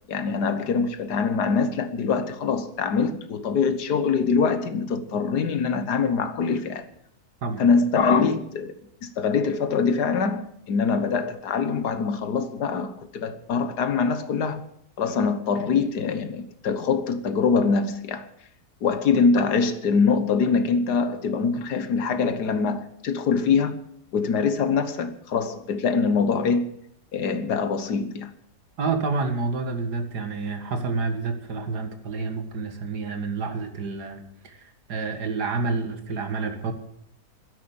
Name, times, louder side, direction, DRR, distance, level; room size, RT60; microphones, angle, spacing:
voice 1, 0.1-6.8 7.6-8.8 9.2-14.6 15.0-18.3 18.8-23.8 24.1-26.7 27.1-28.3, left 5 dB, 85° left, 1.8 m, -24 dB
voice 2, 28.8-34.6 34.9-36.7, right 4 dB, 90° right, 2.4 m, -29 dB
13.0 x 10.0 x 8.9 m
omnidirectional pair, 1.7 m